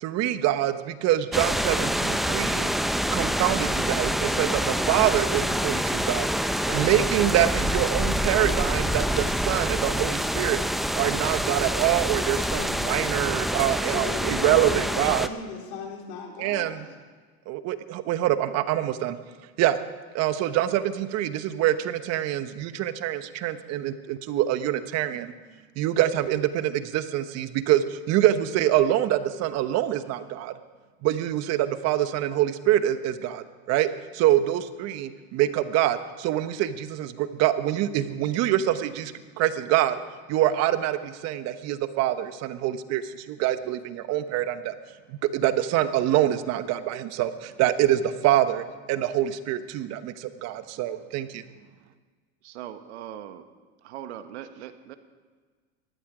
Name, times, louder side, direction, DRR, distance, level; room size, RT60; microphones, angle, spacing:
voice 1, 0.0-2.7 3.1-10.6 11.0-15.3 16.4-16.8 17.5-19.2 19.6-19.8 20.1-25.3 25.8-30.5 31.0-40.0 40.3-44.7 45.3-51.4, right 12 dB, 50° right, 12 dB, 1.1 m, -25 dB
sound 1, 1.3-15.3, equal, ahead, 0.6 m, -26 dB
sound 2, 4.8-8.7, right 2 dB, 20° right, 5.3 m, -44 dB
voice 2, 13.8-16.8, left 5 dB, 75° left, 1 dB, 4.0 m, -37 dB
voice 3, 52.4-53.5 53.8-55.0, right 11 dB, 80° right, 10 dB, 1.4 m, -40 dB
19.0 x 14.5 x 5.0 m, 1.5 s
supercardioid pair, 110°, 33 cm